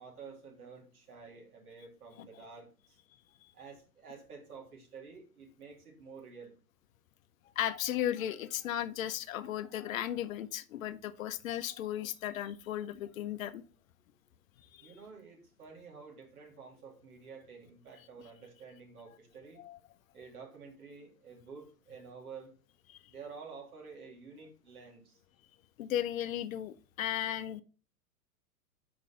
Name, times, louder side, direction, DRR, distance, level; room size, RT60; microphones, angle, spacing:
voice 1, 0.0-3.0 3.5-6.5 14.8-19.6 20.1-22.5 23.1-25.2, right 5 dB, 70° right, 2.3 m, -50 dB
voice 2, 7.6-13.6 14.7-14.9 19.6-19.8 22.9-23.0 25.8-27.6, left 11 dB, 60° left, 0.6 m, -35 dB
5.3 x 4.8 x 3.8 m
hypercardioid pair, 105°, 45 cm